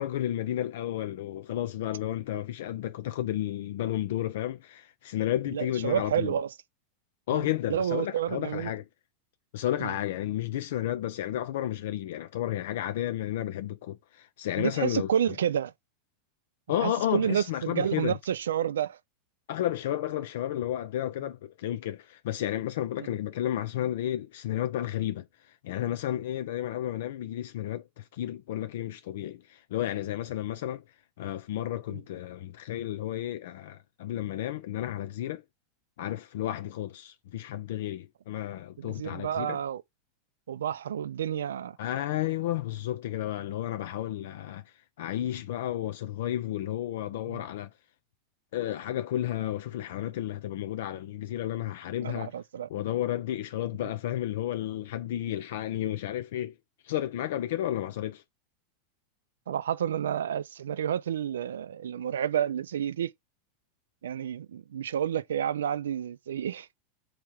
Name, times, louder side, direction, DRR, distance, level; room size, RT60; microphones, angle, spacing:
voice 1, 0.0-6.3 7.3-8.8 9.5-15.1 16.7-18.2 19.5-30.8 31.2-35.4 36.0-39.6 41.8-44.6 45.0-47.7 48.5-52.3 52.7-56.6 56.8-58.2, left 12 dB, 75° left, 0.4 m, -32 dB
voice 2, 5.5-6.5 7.3-8.7 9.8-9.9 14.6-15.7 16.7-19.0 31.9-32.0 38.8-39.8 40.5-41.8 47.3-47.4 52.0-52.7 53.8-53.9 59.5-63.1 64.0-66.7, right 9 dB, 85° right, 0.3 m, -30 dB
3.6 x 2.9 x 4.5 m
hypercardioid pair, 110°, 0 cm